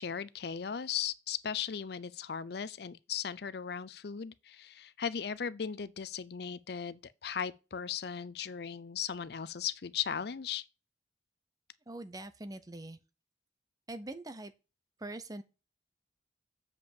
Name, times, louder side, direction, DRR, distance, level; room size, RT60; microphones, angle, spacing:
voice 1, 0.0-10.7, left 8 dB, 60° left, 0.5 m, -37 dB
voice 2, 11.9-13.0 13.9-14.5 15.0-15.4, right 2 dB, 20° right, 0.7 m, -43 dB
7.7 x 5.1 x 7.2 m
head